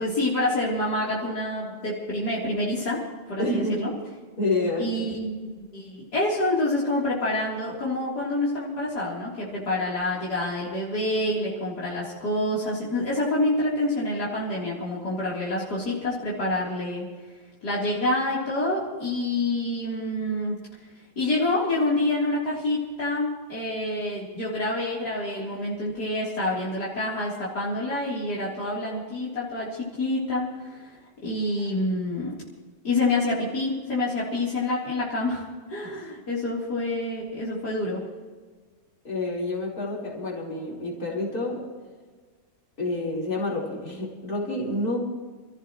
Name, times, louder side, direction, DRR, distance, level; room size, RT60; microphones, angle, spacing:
voice 1, 0.0-3.0 3.3-3.9 4.8-17.1 17.6-20.6 21.2-30.9 31.2-32.4 32.8-35.4 35.7-38.0, left 2 dB, 85° left, -7 dB, 4.3 m, -27 dB
voice 2, 3.4-3.9 4.4-4.9 31.7-31.9 35.8-35.9 39.0-41.6 42.8-45.0, left 2 dB, 65° left, -4 dB, 5.1 m, -28 dB
28.5 x 15.0 x 3.2 m, 1.4 s
omnidirectional pair, 1.7 m